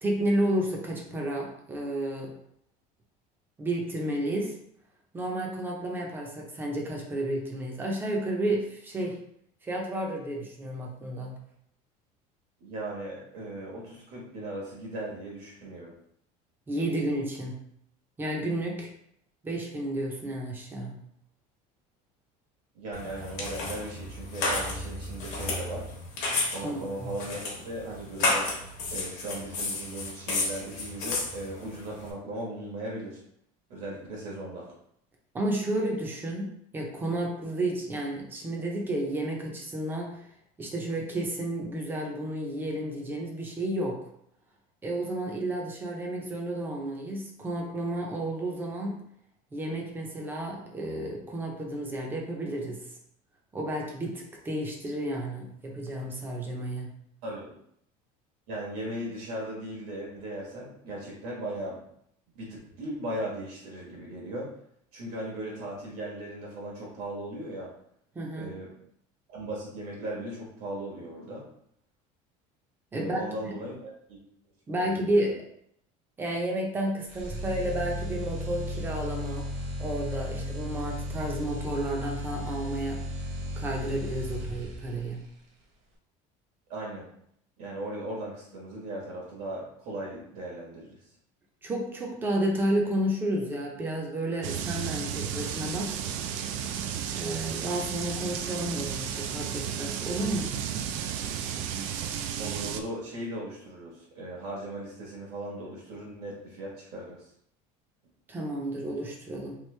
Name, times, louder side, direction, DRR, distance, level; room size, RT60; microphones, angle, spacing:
voice 1, 0.0-2.3 3.6-4.6 5.1-9.2 9.6-11.3 16.7-17.6 18.2-18.9 19.4-21.0 26.6-27.1 35.3-40.3 40.6-44.0 44.8-49.1 49.5-52.8 53.5-56.9 68.1-68.5 72.9-73.2 74.7-75.4 76.2-79.5 79.8-83.0 83.6-85.2 91.6-96.0 97.1-100.5 108.3-109.6, right 1 dB, 15° right, 0 dB, 0.5 m, -31 dB
voice 2, 12.6-15.9 22.7-25.9 26.5-28.5 28.9-33.2 33.7-34.7 57.2-57.6 58.5-61.8 62.3-64.5 64.9-67.7 68.4-68.7 69.3-71.4 72.9-74.2 74.8-75.2 86.7-87.1 87.6-91.0 102.4-107.3, right 1 dB, 65° right, -4 dB, 1.1 m, -38 dB
sound 1, 22.9-32.1, left 3 dB, 50° left, 0.9 m, -32 dB
sound 2, 77.1-85.1, equal, 40° right, 0.8 m, -35 dB
sound 3, 94.4-102.8, right 8 dB, 80° right, 0.4 m, -33 dB
3.1 x 2.6 x 3.2 m, 0.71 s
cardioid pair, 175°, 16 cm